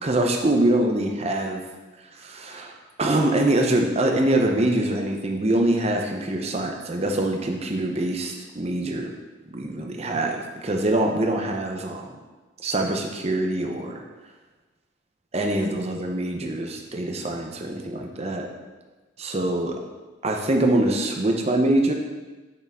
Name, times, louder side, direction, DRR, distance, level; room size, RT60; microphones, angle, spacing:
voice 1, 0.0-1.6 2.2-2.7 3.0-9.1 9.5-12.1 12.6-14.0 15.3-18.5 19.2-19.7 20.2-21.9, right 1 dB, 30° right, 2 dB, 0.7 m, -24 dB
6.6 x 6.1 x 3.6 m, 1.2 s
head